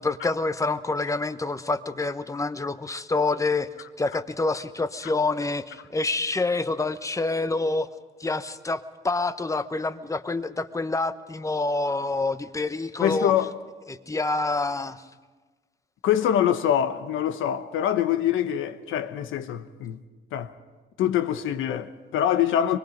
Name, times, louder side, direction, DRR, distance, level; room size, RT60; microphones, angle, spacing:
voice 1, 0.0-3.7 4.0-7.9 8.2-13.3 13.9-15.0, left 3 dB, 15° left, 1.0 m, -27 dB
voice 2, 13.0-13.5 16.0-20.0 20.3-20.5 21.0-22.8, left 10 dB, 85° left, 1.1 m, -24 dB
24.0 x 21.5 x 5.2 m
cardioid pair, 90°, 20 cm